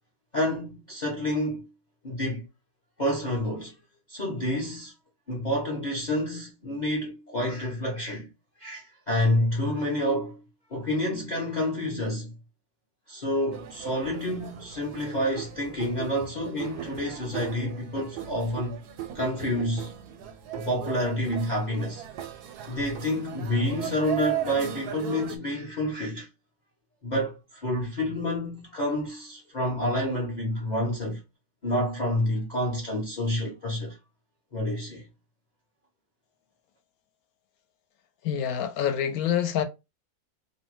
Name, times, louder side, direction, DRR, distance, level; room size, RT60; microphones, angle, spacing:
voice 1, 0.3-1.7 2.0-2.5 3.0-3.7 4.1-4.9 5.3-8.3 8.6-10.4 10.7-12.3 13.1-18.8 19.1-19.9 20.5-22.0 22.7-26.3 27.0-31.2 31.6-34.0 34.5-35.1, left 1 dB, 45° left, 0.6 m, -28 dB
sound 1, 13.5-25.4, right 11 dB, 85° right, 1.2 m, -38 dB
voice 2, 38.2-39.6, left 9 dB, 75° left, 1.0 m, -26 dB
2.7 x 2.2 x 3.0 m
omnidirectional pair, 1.6 m